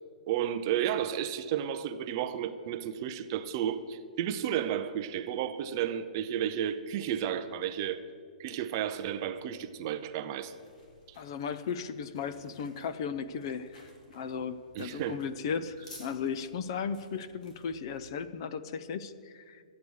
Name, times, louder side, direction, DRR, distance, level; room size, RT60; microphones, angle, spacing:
voice 1, 0.2-8.0 8.4-10.5 14.8-15.2, right 10 dB, 25° right, 10 dB, 0.4 m, -32 dB
sound 1, 10.4-18.1, left 2 dB, 60° left, 2.9 m, -56 dB
voice 2, 11.2-13.8 14.1-19.6, left 6 dB, 35° left, 13 dB, 0.4 m, -36 dB
12.0 x 8.4 x 6.3 m, 2.1 s
hypercardioid pair, 170°, 5 cm